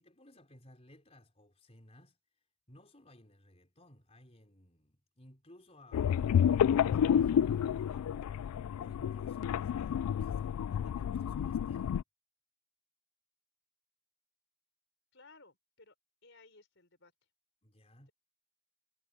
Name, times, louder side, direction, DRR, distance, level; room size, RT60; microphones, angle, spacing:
voice 1, 0.0-8.2 8.8-12.0 17.6-18.1, left 1 dB, 30° left, 4.5 m, -59 dB
sound 1, 5.9-12.0, left 8 dB, 80° left, 0.3 m, -30 dB
voice 2, 15.1-15.9 16.2-17.1, left 3 dB, 55° left, 5.5 m, -59 dB
head